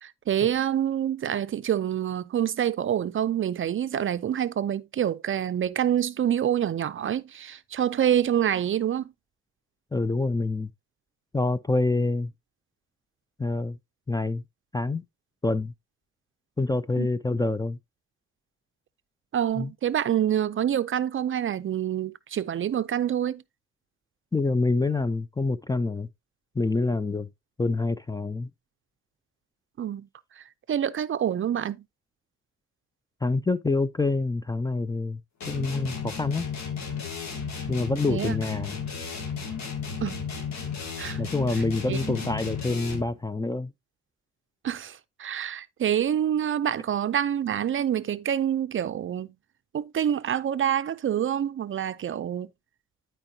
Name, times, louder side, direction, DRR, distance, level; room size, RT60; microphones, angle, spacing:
voice 1, 0.0-9.1 17.0-17.1 19.3-23.4 29.8-30.1 30.4-31.8 38.1-38.4 40.0-40.2 41.0-41.2 41.9-42.2 44.6-49.3 49.7-52.5, right 10 dB, 45° right, 0.5 m, -27 dB
voice 2, 9.9-10.7 11.3-12.3 13.4-13.8 14.1-14.4 14.7-15.0 15.4-15.7 16.6-17.8 19.6-19.7 24.3-26.1 26.6-27.3 27.6-28.5 33.2-35.2 35.5-36.5 37.7-38.8 41.2-43.7, left 3 dB, 15° left, 0.4 m, -26 dB
sound 1, 35.4-43.2, left 6 dB, 65° left, 2.3 m, -34 dB
11.5 x 4.5 x 2.8 m
cardioid pair, 90°, 30 cm